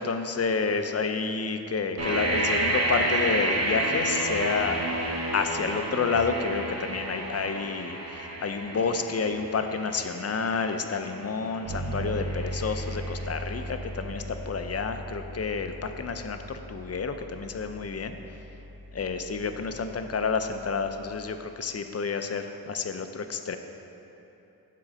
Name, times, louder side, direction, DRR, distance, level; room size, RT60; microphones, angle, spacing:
voice 1, 0.0-4.8 5.3-18.2 18.9-23.6, left 5 dB, 40° left, 7 dB, 0.5 m, -29 dB
sound 1, 2.0-13.8, right 1 dB, 45° right, 1.2 m, -31 dB
Bass guitar, 11.6-21.4, right 1 dB, 65° right, 1.3 m, -39 dB
7.4 x 3.8 x 6.1 m, 3.0 s
wide cardioid pair, 75°, 37 cm